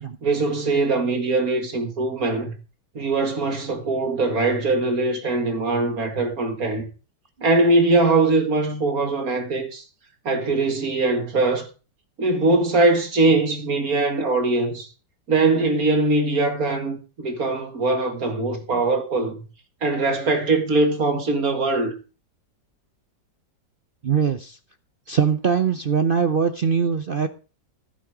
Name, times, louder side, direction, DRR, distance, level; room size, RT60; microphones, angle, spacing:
voice 1, 0.2-2.5 3.0-6.9 7.4-9.8 10.3-11.7 12.2-14.9 15.3-19.5 19.8-21.9, right 2 dB, 50° right, 2.2 m, -21 dB
voice 2, 24.0-24.6 25.1-27.3, right 6 dB, 70° right, 0.5 m, -22 dB
12.0 x 9.8 x 4.8 m
omnidirectional pair, 2.0 m